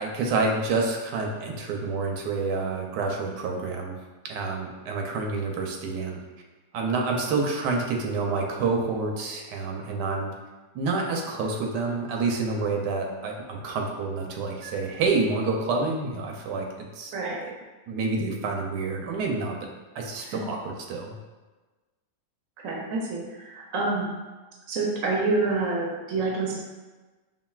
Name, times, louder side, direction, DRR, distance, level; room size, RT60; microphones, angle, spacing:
voice 1, 0.0-4.0 4.2-6.2 6.7-10.3 10.7-16.7 17.0-17.1 17.4-17.5 17.9-19.7 19.9-21.1, right 3 dB, 80° right, 1 dB, 1.2 m, -28 dB
voice 2, 22.6-24.1 24.7-26.6, right 3 dB, 65° right, -2 dB, 0.8 m, -27 dB
5.4 x 2.6 x 2.3 m, 1.2 s
omnidirectional pair, 1.8 m